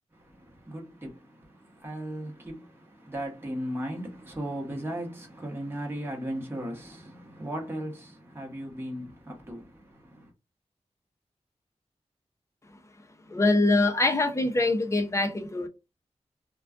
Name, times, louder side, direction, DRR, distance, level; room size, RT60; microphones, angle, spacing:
voice 1, 0.1-10.3, right 1 dB, 20° right, 0.9 m, -37 dB
voice 2, 13.3-15.7, left 2 dB, 25° left, 0.6 m, -24 dB
2.3 x 2.2 x 2.4 m
wide cardioid pair, 90°, 12 cm